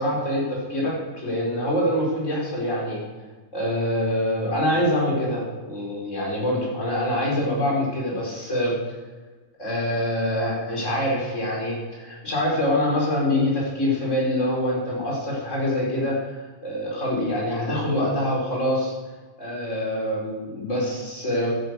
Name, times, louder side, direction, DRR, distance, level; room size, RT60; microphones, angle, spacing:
voice 1, 0.0-3.0 3.5-8.8 9.6-18.9 19.4-21.6, left 1 dB, 70° left, -4 dB, 5.0 m, -25 dB
11.5 x 11.0 x 8.1 m, 1.3 s
omnidirectional pair, 1.3 m